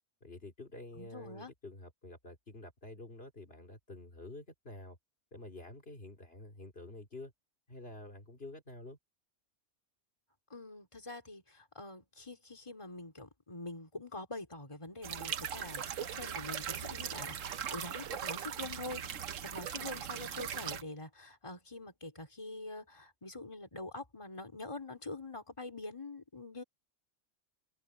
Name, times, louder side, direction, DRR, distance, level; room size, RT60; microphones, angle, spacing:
voice 1, 0.2-5.0 5.3-7.3 7.7-9.0, left 2 dB, 50° left, 3.4 m, -49 dB
voice 2, 1.0-1.5 10.5-26.6, left 2 dB, 25° left, 3.4 m, -45 dB
sound 1, 15.0-20.8, right 8 dB, 85° right, 1.3 m, -39 dB
omnidirectional pair, 1.3 m